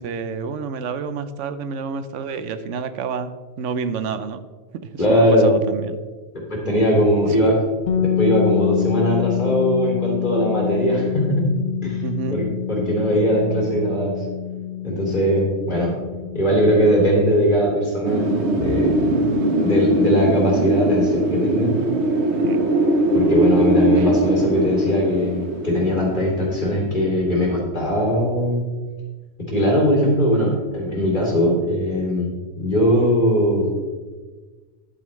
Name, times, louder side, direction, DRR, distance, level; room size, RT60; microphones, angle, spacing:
voice 1, 0.0-4.4 4.7-6.0 7.0-7.5 12.0-12.4 22.3-22.6 24.0-24.1, right 5 dB, 85° right, 12 dB, 1.0 m, -29 dB
voice 2, 5.0-5.5 6.3-7.6 8.0-11.5 11.8-12.0 12.3-14.3 14.8-15.9 16.3-21.7 23.1-28.6 29.4-33.8, equal, 40° left, -4 dB, 3.0 m, -20 dB
sound 1, 7.9-17.6, left 11 dB, 75° left, 1.0 m, -26 dB
Wind, 18.1-26.8, right 1 dB, 65° right, 1.4 m, -20 dB
11.0 x 8.7 x 3.2 m, 1.4 s
omnidirectional pair, 1.2 m